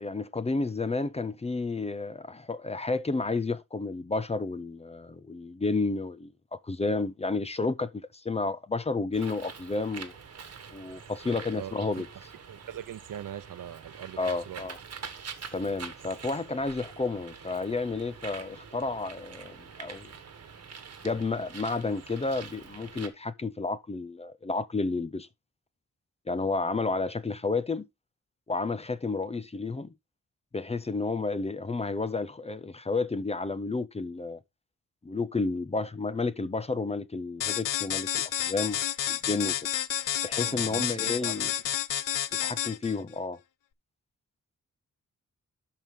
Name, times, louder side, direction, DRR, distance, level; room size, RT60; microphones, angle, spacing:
voice 1, 0.0-10.1 10.7-12.1 14.2-14.8 15.5-20.1 21.0-25.3 26.3-27.9 28.5-29.9 30.5-34.4 35.0-38.8 39.1-39.6 40.2-41.5 42.3-43.4, left 3 dB, 20° left, 0.5 m, -31 dB
Bird, 9.1-23.1, right 6 dB, 50° right, 1.3 m, -45 dB
voice 2, 11.5-12.0 12.5-14.6 40.4-41.4, right 11 dB, 80° right, 0.7 m, -41 dB
sound 1, 37.4-43.0, left 11 dB, 75° left, 0.6 m, -30 dB
12.0 x 4.6 x 3.6 m
wide cardioid pair, 170°, 32 cm